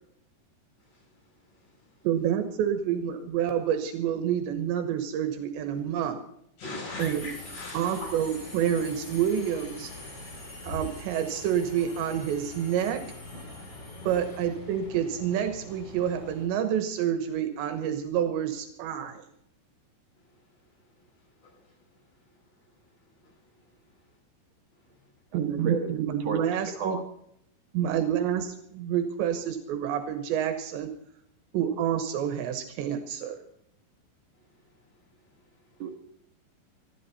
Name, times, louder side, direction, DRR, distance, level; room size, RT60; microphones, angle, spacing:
voice 1, 0.8-2.1 6.6-8.1 21.1-21.7 23.2-23.5 24.0-24.1 24.8-25.0 34.6-34.9 35.7-35.8, left 2 dB, 80° left, -9 dB, 9.8 m, -43 dB
voice 2, 2.0-6.2 7.0-7.2 7.7-9.9 10.7-13.0 14.1-19.3 25.3-27.0 27.7-30.9 31.5-33.4, right 9 dB, 80° right, 8 dB, 3.3 m, -28 dB
Subway metro underground, 7.0-16.4, left 2 dB, 40° left, 7.0 m, -43 dB
voice 3, 26.3-27.0 35.8-35.9, right 5 dB, 65° right, 3 dB, 1.6 m, -31 dB
21.0 x 13.5 x 4.1 m, 0.74 s
omnidirectional pair, 5.2 m